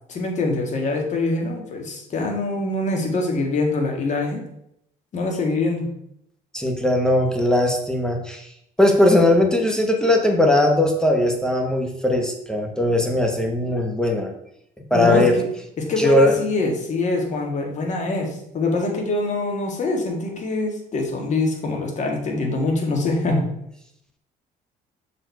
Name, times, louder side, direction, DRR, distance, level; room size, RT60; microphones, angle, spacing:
voice 1, 0.1-4.4 5.1-5.9 14.9-15.3 15.8-23.5, left 2 dB, 45° left, 2 dB, 1.7 m, -24 dB
voice 2, 6.5-8.5 8.8-14.3 14.8-15.3 16.0-16.3, left 1 dB, 5° left, 2 dB, 1.1 m, -19 dB
6.3 x 4.4 x 4.6 m, 0.77 s
cardioid pair, 110°, 17 cm